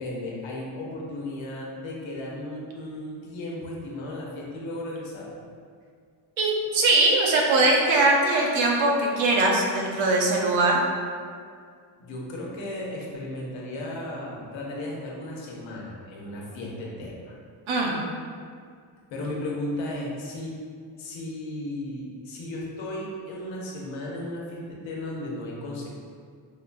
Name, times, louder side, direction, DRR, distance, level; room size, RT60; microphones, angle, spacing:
voice 1, 0.0-5.3 12.0-17.3 19.1-20.6 21.0-26.0, left 1 dB, 75° left, -3 dB, 0.9 m, -35 dB
voice 2, 6.4-10.8 17.7-18.0, right 2 dB, 75° right, -1 dB, 0.8 m, -21 dB
4.7 x 2.2 x 2.5 m, 2.1 s
cardioid pair, 110°, 47 cm